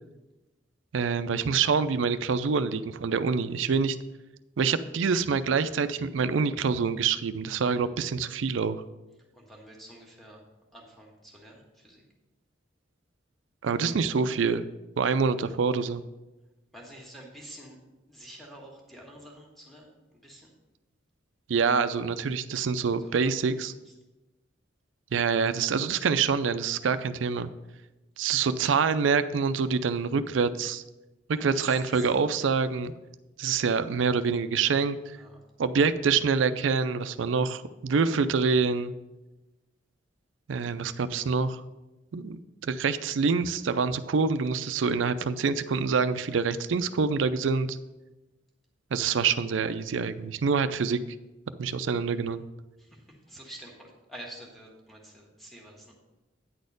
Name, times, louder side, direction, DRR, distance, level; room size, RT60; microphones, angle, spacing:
voice 1, 0.9-4.0 4.6-8.8 13.6-14.7 15.0-16.0 21.5-23.7 25.1-27.5 28.2-30.8 31.3-32.9 33.4-35.2 35.6-38.9 40.5-41.6 42.1-47.8 48.9-51.0 51.6-52.4, right 5 dB, 75° right, 13 dB, 0.4 m, -26 dB
voice 2, 9.3-10.4 10.7-12.0 16.7-17.8 18.1-19.9 20.2-20.5 23.1-23.3 31.4-31.9 35.2-35.3 53.3-55.9, right 1 dB, ahead, -1 dB, 1.6 m, -48 dB
9.4 x 4.2 x 6.5 m, 1.0 s
head